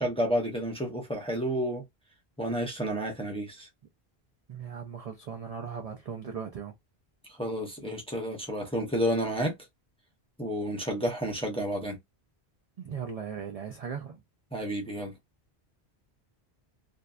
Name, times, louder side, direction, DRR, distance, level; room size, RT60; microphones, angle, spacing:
voice 1, 0.0-1.8 2.4-3.7 7.3-9.5 10.4-12.0 14.5-15.1, equal, 5° left, 0.6 m, -30 dB
voice 2, 4.5-6.7 12.8-14.2, right 7 dB, 55° right, 0.4 m, -38 dB
2.6 x 2.2 x 2.3 m
omnidirectional pair, 1.1 m